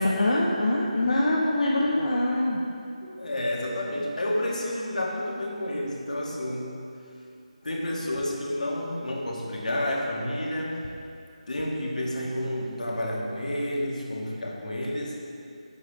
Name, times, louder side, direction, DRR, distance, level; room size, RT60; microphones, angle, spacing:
voice 1, 0.0-2.6, left 1 dB, 65° left, -3 dB, 1.1 m, -24 dB
voice 2, 3.0-6.8 7.6-10.8 11.5-15.2, left 1 dB, 85° left, -2 dB, 2.4 m, -30 dB
8.9 x 8.5 x 5.0 m, 2.5 s
figure-of-eight pair, 180°, 4 cm